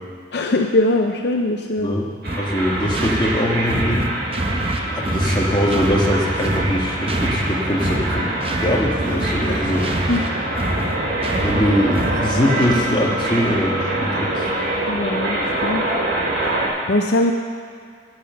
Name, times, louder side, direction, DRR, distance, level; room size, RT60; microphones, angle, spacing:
voice 1, 0.3-1.9 10.1-10.2 14.9-15.8 16.9-17.3, left 2 dB, 60° left, 4 dB, 0.6 m, -20 dB
voice 2, 1.8-2.1 2.4-4.1 4.9-8.3 8.6-10.1 11.4-14.4, equal, 25° left, -3 dB, 1.6 m, -22 dB
sound 1, 2.2-16.7, right 1 dB, 65° right, 2.5 m, -25 dB
sound 2, 2.3-13.0, right 1 dB, 30° right, 0.7 m, -26 dB
9.6 x 9.6 x 6.8 m, 2.2 s
head